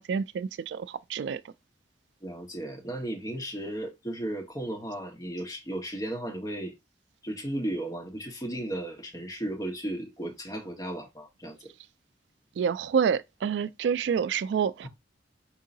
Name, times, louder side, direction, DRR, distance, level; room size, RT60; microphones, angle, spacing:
voice 1, 0.0-1.5 12.6-14.9, right 7 dB, 75° right, 0.3 m, -28 dB
voice 2, 2.2-6.8 7.2-11.6, right 1 dB, 20° left, 1.4 m, -35 dB
4.6 x 3.8 x 2.7 m
head